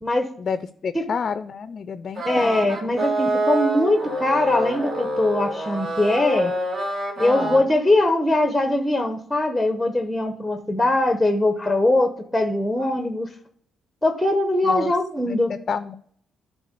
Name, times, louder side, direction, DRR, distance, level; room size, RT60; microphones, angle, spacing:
voice 1, 0.4-2.8 7.2-7.6 14.6-14.9 15.3-15.4 15.7-15.9, left 6 dB, 45° left, 12 dB, 0.4 m, -29 dB
voice 2, 2.2-6.5 7.2-13.3 14.0-15.5, left 1 dB, 5° left, 6 dB, 0.9 m, -21 dB
sound 1, 2.2-7.6, right 1 dB, 50° right, 2.2 m, -26 dB
10.0 x 3.6 x 6.7 m, 0.63 s
cardioid pair, 90°, 0 cm